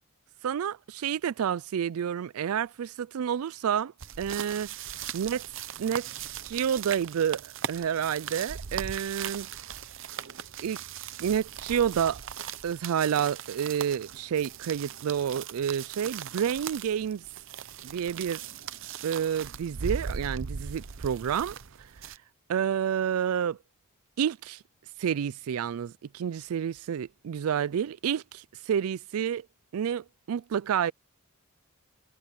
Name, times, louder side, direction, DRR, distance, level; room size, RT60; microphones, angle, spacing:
voice 1, 0.4-4.7 5.1-5.4 5.8-6.1 6.5-9.5 10.6-10.8 11.2-12.2 12.6-17.2 17.8-18.4 19.0-21.6 22.5-23.6 24.2-24.6 25.0-29.5 29.7-30.9, right 8 dB, 75° right, 0.4 m, -29 dB
sound 1, 4.0-22.2, right 7 dB, 60° right, 0.7 m, -39 dB
head